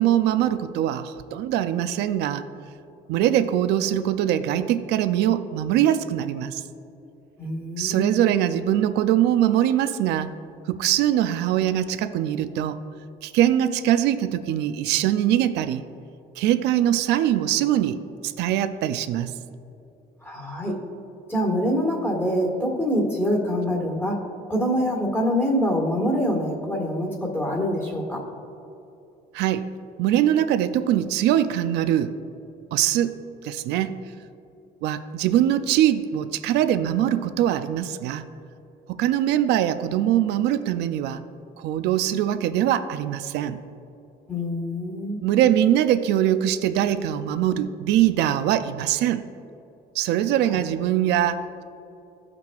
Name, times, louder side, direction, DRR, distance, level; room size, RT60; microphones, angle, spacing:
voice 1, 0.0-2.4 3.1-6.6 7.8-10.3 10.7-12.8 13.2-15.9 16.4-19.3 29.3-29.7 30.0-32.1 32.7-33.2 33.4-34.0 34.8-38.2 38.9-41.2 41.6-43.6 45.2-49.2 49.9-51.6, right 11 dB, 85° right, 11 dB, 0.4 m, -22 dB
voice 2, 7.4-8.1 20.2-20.8 21.3-24.2 24.5-28.2 44.3-45.2, equal, 15° left, -2 dB, 1.7 m, -25 dB
15.0 x 5.9 x 2.4 m, 2.8 s
cardioid pair, 110°, 17 cm